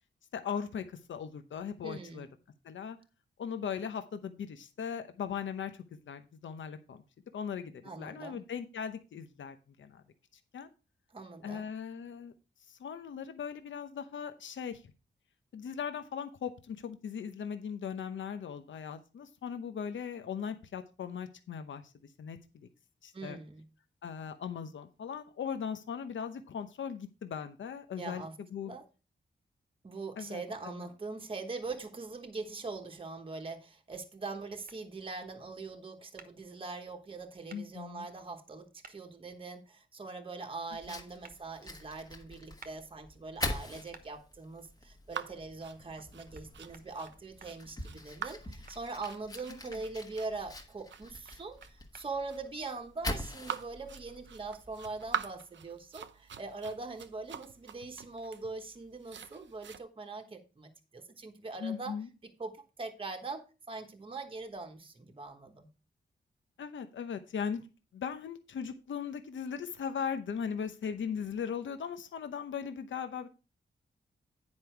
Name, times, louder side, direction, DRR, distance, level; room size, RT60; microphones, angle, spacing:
voice 1, 0.3-2.3 2.6-3.0 3.4-7.0 7.3-10.0 10.5-10.7 11.4-12.3 12.7-14.8 15.5-21.8 22.2-22.7 23.0-23.4 24.0-28.2 28.5-28.8 30.2-30.4 37.5-38.1 40.9-41.0 61.6-62.1 66.6-67.7 67.9-73.3, left 7 dB, 80° left, 9 dB, 0.9 m, -38 dB
voice 2, 1.8-2.3 7.8-8.4 11.1-11.7 23.1-23.6 28.0-28.3 28.7-28.8 29.8-62.0 62.4-65.7, right 3 dB, 25° right, 5 dB, 1.1 m, -42 dB
sound 1, 34.7-34.8 36.2-36.3 37.5-37.6 38.8-39.0 41.2-41.4 42.6-42.8 43.9-44.1 46.3-46.5 46.7-47.5 48.7-49.8 50.9-52.1, right 5 dB, 50° right, 1.1 m, -53 dB
Fire, 40.7-55.3, left 1 dB, 20° left, 1.4 m, -44 dB
sound 2, 45.1-59.8, right 8 dB, 70° right, 0.7 m, -44 dB
9.8 x 5.4 x 4.5 m, 0.31 s
wide cardioid pair, 155°, 19 cm